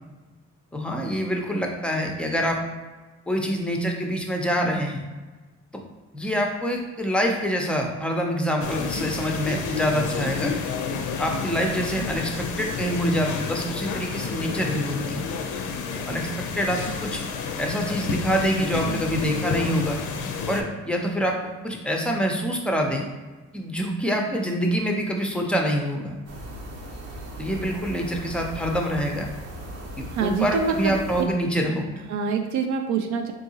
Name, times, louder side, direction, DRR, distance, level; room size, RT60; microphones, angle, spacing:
voice 1, 0.7-2.6 3.3-5.0 6.1-10.5 11.2-15.3 16.0-16.3 16.6-17.2 17.6-20.0 20.5-21.4 21.6-23.0 23.5-26.2 27.4-29.3 30.0-32.1, equal, 5° left, 1 dB, 0.5 m, -26 dB
sound 1, 8.6-20.6, left 5 dB, 85° left, 0.5 m, -30 dB
sound 2, 26.3-31.2, equal, 55° right, 0.9 m, -38 dB
voice 2, 30.1-31.0 32.1-33.3, right 5 dB, 70° right, 5 dB, 0.5 m, -25 dB
3.6 x 2.7 x 2.8 m, 1.3 s
cardioid pair, 90°, 30 cm